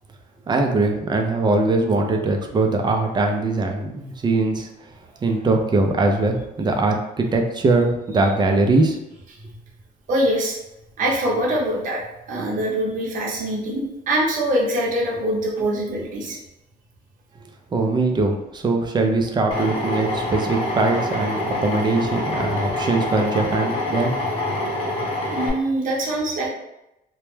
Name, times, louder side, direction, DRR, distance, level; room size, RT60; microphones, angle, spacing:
voice 1, 0.5-4.7 5.2-9.0 17.7-24.1 24.5-24.6, right 3 dB, 25° right, 3 dB, 0.4 m, -21 dB
voice 2, 10.1-10.6 11.0-12.0 12.3-16.4 25.3-26.5, right 1 dB, 50° right, -3 dB, 0.7 m, -23 dB
Drill, 19.5-25.5, left 1 dB, 35° left, 0.8 m, -26 dB
2.2 x 2.0 x 3.1 m, 0.88 s
cardioid pair, 110°, 17 cm